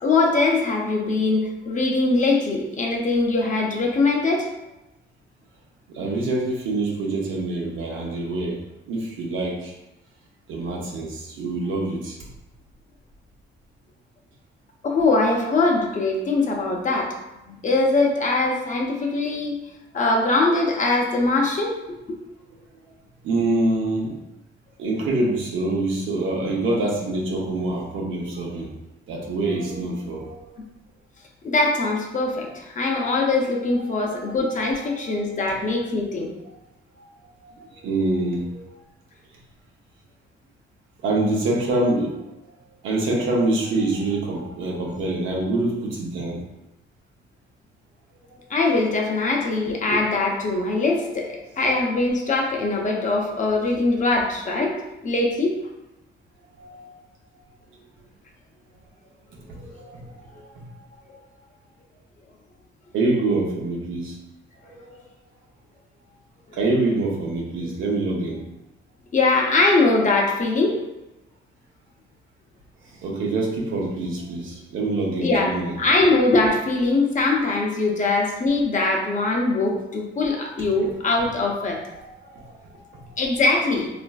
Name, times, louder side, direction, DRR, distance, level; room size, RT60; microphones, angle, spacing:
voice 1, 0.0-4.5 14.8-17.1 17.5-19.5 19.9-21.7 22.1-22.2 31.4-36.3 48.5-54.7 55.0-55.6 66.5-66.6 69.1-70.8 75.2-81.8 83.2-83.9, left 3 dB, 40° left, 0 dB, 0.6 m, -22 dB
voice 2, 5.9-8.6 8.9-9.7 10.5-12.3 23.2-24.2 24.8-28.7 29.1-30.6 33.9-35.1 35.4-35.6 37.0-37.1 37.4-38.8 41.0-42.2 42.8-46.4 48.3-48.4 56.6-56.9 59.3-60.9 62.9-64.2 64.8-65.0 66.5-68.4 72.8-75.8 81.9-83.1, right 2 dB, 85° right, -2 dB, 0.7 m, -26 dB
3.1 x 2.5 x 2.3 m, 0.95 s
cardioid pair, 90°, 20 cm